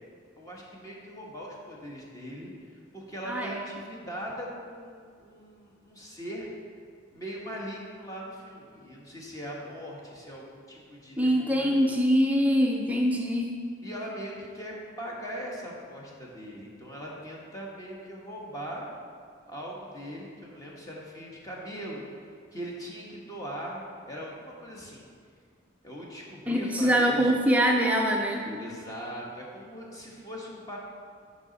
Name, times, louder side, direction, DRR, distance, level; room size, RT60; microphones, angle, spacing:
voice 1, 0.4-6.5 7.1-11.9 13.8-18.9 19.4-22.0 22.5-23.8 24.1-25.1 25.8-27.4 28.6-30.8, equal, 20° left, -3 dB, 1.3 m, -40 dB
voice 2, 3.2-3.6 11.2-13.5 26.5-28.6, equal, 10° right, 0 dB, 0.5 m, -24 dB
9.5 x 5.4 x 4.0 m, 2.1 s
head